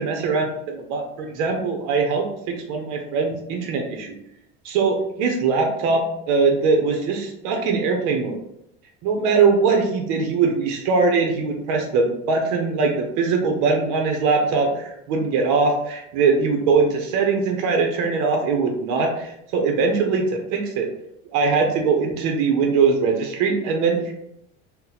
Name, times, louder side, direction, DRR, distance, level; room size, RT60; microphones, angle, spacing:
voice 1, 0.0-4.2 4.6-8.4 9.0-20.9 21.3-24.2, right 4 dB, 70° right, 2 dB, 0.7 m, -21 dB
2.7 x 2.2 x 3.9 m, 0.76 s
supercardioid pair, 95°, 33 cm